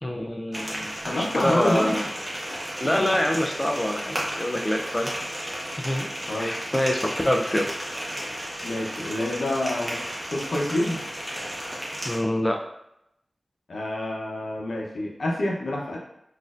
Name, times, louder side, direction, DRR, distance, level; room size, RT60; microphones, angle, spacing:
voice 1, 0.0-2.1 2.8-5.1 5.8-6.1 6.4-7.7 12.0-12.6, left 1 dB, 15° left, 2 dB, 0.3 m, -25 dB
sound 1, 0.5-12.2, equal, 10° right, 0.9 m, -33 dB
voice 2, 1.0-1.9 6.3-6.5 8.6-9.9 10.3-11.0 13.7-16.0, left 1 dB, 80° left, -2 dB, 0.7 m, -27 dB
4.1 x 2.5 x 2.4 m, 0.80 s
wide cardioid pair, 80°, 0 cm